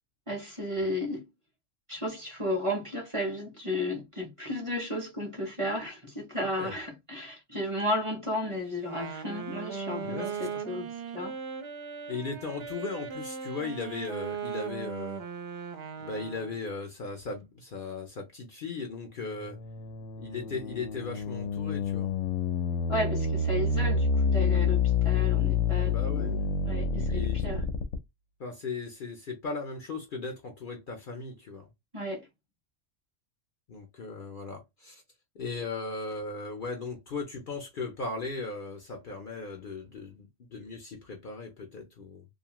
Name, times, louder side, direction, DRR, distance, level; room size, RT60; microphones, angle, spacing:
voice 1, 0.3-1.3 1.9-11.4 22.9-27.7 31.9-32.3, left 1 dB, 30° right, 0.8 m, -33 dB
Wind instrument woodwind instrument, 8.8-16.7, right 6 dB, 60° right, 0.9 m, -38 dB
voice 2, 10.0-10.6 12.1-15.2 16.0-19.6 20.2-22.1 25.8-26.3 27.1-27.4 28.4-31.7 33.7-35.0 35.3-42.3, left 4 dB, 50° left, 0.7 m, -37 dB
sound 1, 19.2-28.0, left 5 dB, 90° left, 1.0 m, -28 dB
2.7 x 2.4 x 2.9 m
omnidirectional pair, 1.3 m